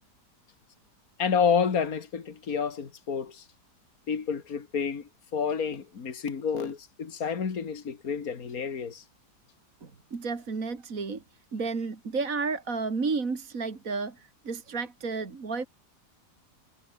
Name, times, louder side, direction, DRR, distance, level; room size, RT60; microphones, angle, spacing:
voice 1, 1.2-3.4 4.1-9.0, left 6 dB, 60° left, 2.5 m, -29 dB
voice 2, 9.8-11.2 11.5-15.7, right 4 dB, 55° right, 2.9 m, -32 dB
omnidirectional pair, 1.8 m